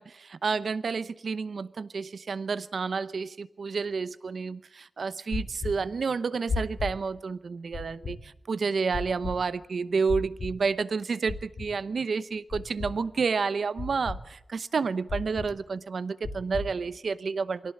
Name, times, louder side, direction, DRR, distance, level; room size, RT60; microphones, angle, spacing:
voice 1, 0.0-17.7, right 5 dB, 75° right, 0.8 m, -30 dB
sound 1, 5.3-5.7 6.5-6.9 7.7-8.1 8.9-9.3 10.1-10.5 11.3-11.7 12.5-12.9 13.8-14.2 15.1-15.5 16.2-16.7, left 4 dB, 80° left, 3.6 m, -32 dB
24.0 x 17.5 x 8.7 m
wide cardioid pair, 115°, 0 cm